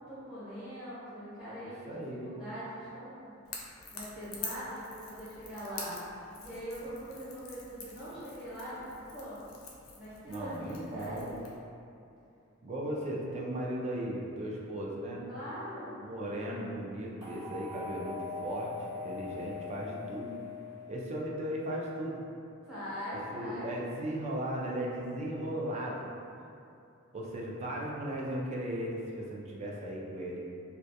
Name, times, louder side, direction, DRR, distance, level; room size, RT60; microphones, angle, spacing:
voice 1, 0.0-1.9 2.2-3.3 3.9-6.0 6.4-9.4 10.0-11.4 15.3-15.9 22.7-23.7, equal, 5° right, -13 dB, 0.9 m, -42 dB
voice 2, 1.9-2.3 10.3-11.3 12.6-15.2 16.0-18.7 19.0-20.3 20.9-22.2 23.3-26.1 27.1-30.4, right 1 dB, 35° right, -3 dB, 0.3 m, -36 dB
Crackle / Crack, 3.4-11.6, left 4 dB, 75° left, 0.4 m, -47 dB
sound 1, 17.2-21.4, left 5 dB, 50° right, 1.2 m, -42 dB
2.2 x 2.2 x 2.6 m, 2.6 s
head